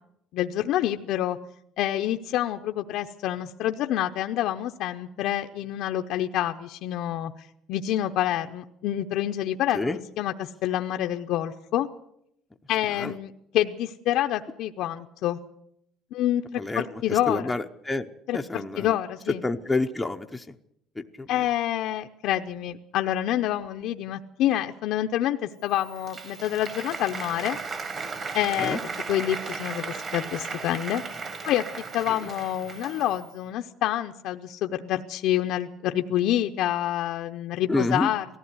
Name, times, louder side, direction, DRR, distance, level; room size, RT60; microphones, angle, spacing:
voice 1, 0.3-1.4 1.8-7.3 7.7-11.9 12.7-15.4 16.1-17.5 18.3-19.4 21.3-27.6 28.3-28.8 29.1-31.0 31.4-31.6 31.9-38.3, left 12 dB, 55° left, 5 dB, 0.7 m, -27 dB
voice 2, 17.1-18.1 18.3-19.0 19.4-20.4 21.0-21.3 28.6-28.8 37.7-38.1, left 2 dB, 5° left, 4 dB, 0.7 m, -28 dB
Applause, 25.7-33.3, right 4 dB, 25° right, 1.5 m, -36 dB
19.0 x 14.5 x 9.5 m, 0.75 s
cardioid pair, 175°, 0 cm